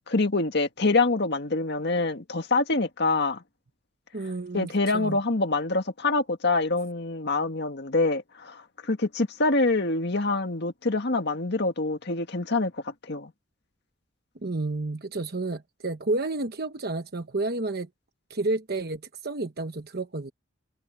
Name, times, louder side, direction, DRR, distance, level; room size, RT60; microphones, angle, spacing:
voice 1, 0.1-3.4 4.5-13.3, left 3 dB, 55° left, 1.9 m, -25 dB
voice 2, 4.1-5.2 14.4-17.9 18.3-20.3, right 2 dB, 50° right, 1.1 m, -30 dB
head